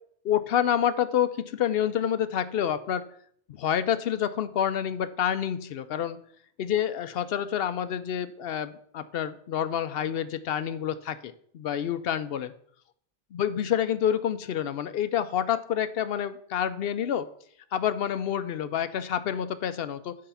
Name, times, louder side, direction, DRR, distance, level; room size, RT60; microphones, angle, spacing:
voice 1, 0.2-3.0 3.5-6.2 6.6-12.5 13.3-17.3 17.7-20.2, left 9 dB, 65° left, 13 dB, 0.7 m, -28 dB
9.2 x 4.7 x 5.6 m, 0.63 s
omnidirectional pair, 1.2 m